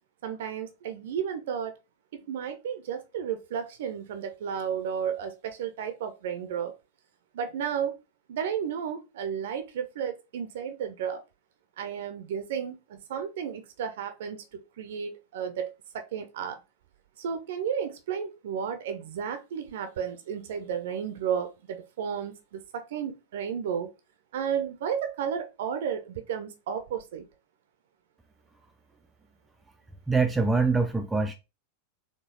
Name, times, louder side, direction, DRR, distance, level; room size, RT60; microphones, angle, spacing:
voice 1, 0.2-1.7 2.3-6.7 7.3-8.0 8.3-11.2 11.8-16.6 17.2-23.9 24.3-27.2, right 8 dB, 55° right, 0.6 m, -33 dB
voice 2, 30.1-31.3, right 4 dB, 10° right, 0.4 m, -24 dB
4.4 x 3.0 x 3.0 m
figure-of-eight pair, 90°, 0 cm